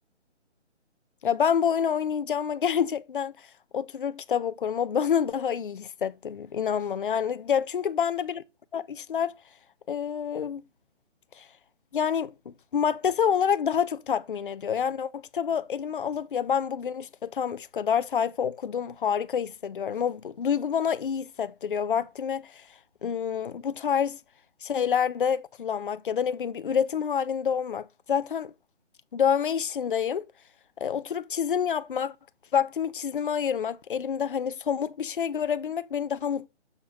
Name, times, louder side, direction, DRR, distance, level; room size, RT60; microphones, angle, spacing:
voice 1, 1.2-3.3 3.7-8.4 8.7-9.3 9.9-10.6 11.4-11.5 11.9-22.5 23.0-24.2 24.6-28.5 29.1-30.2 30.8-32.1 32.5-36.5, left 7 dB, 50° left, 0.5 m, -27 dB
7.0 x 6.6 x 3.0 m
hypercardioid pair, 165°, 35 cm